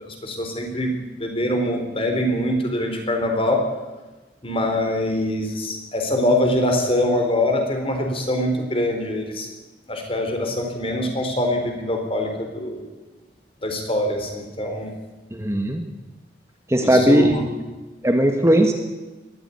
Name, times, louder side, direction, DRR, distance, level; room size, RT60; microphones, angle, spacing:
voice 1, 0.0-3.6 4.4-9.5 9.9-12.8 13.6-14.9 16.8-17.4, left 1 dB, 30° left, 3 dB, 4.3 m, -23 dB
voice 2, 15.4-15.8 16.7-17.3 18.0-18.7, right 1 dB, 15° right, 4 dB, 1.6 m, -17 dB
20.5 x 14.0 x 9.6 m, 1.2 s
head